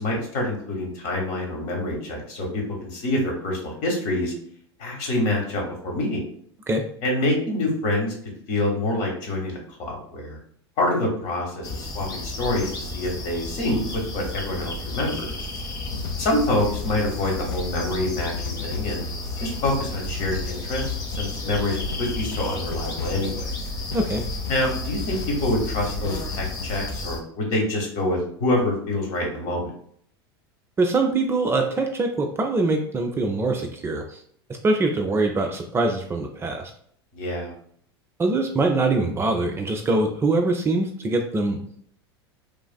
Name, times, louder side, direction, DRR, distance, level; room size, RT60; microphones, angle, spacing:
voice 1, 0.0-4.3 4.8-6.2 7.0-8.1 8.5-10.4 10.8-13.8 14.1-15.3 16.2-19.0 19.4-23.5 24.5-29.7 37.1-37.5, left 1 dB, 55° left, 0 dB, 1.1 m, -26 dB
sound 1, 11.6-27.2, left 2 dB, 25° left, 0.6 m, -33 dB
sound 2, 15.8-26.8, left 6 dB, 75° left, 0.4 m, -35 dB
voice 2, 30.8-34.2 34.6-36.7 38.2-41.6, right 2 dB, 20° right, 3 dB, 0.4 m, -23 dB
3.1 x 2.4 x 2.2 m, 0.62 s
hypercardioid pair, 85°, 14 cm